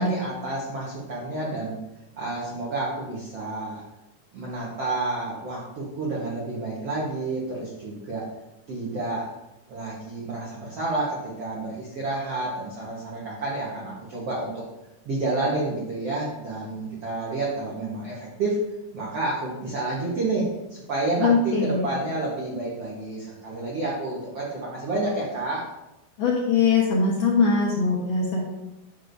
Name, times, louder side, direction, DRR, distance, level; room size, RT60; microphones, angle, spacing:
voice 1, 0.0-1.8 2.2-3.8 4.3-8.3 8.7-9.3 9.7-14.6 15.0-18.6 18.9-25.7, right 2 dB, 85° right, -5 dB, 1.3 m, -29 dB
voice 2, 21.2-21.9 26.2-28.4, left 4 dB, 65° left, -4 dB, 2.4 m, -21 dB
9.7 x 6.4 x 2.7 m, 0.96 s
omnidirectional pair, 5.0 m